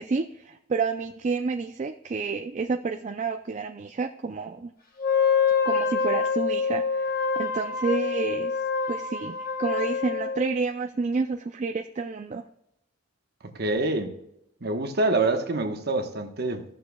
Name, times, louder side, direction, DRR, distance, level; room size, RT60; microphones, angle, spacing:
voice 1, 0.0-4.7 5.6-8.6 8.9-12.4, right 4 dB, 35° right, 0.4 m, -30 dB
Wind instrument woodwind instrument, 5.0-10.6, left 5 dB, 45° left, 1.4 m, -26 dB
voice 2, 13.4-14.1 14.6-16.6, right 2 dB, 50° right, 1.1 m, -26 dB
16.5 x 6.5 x 2.2 m
head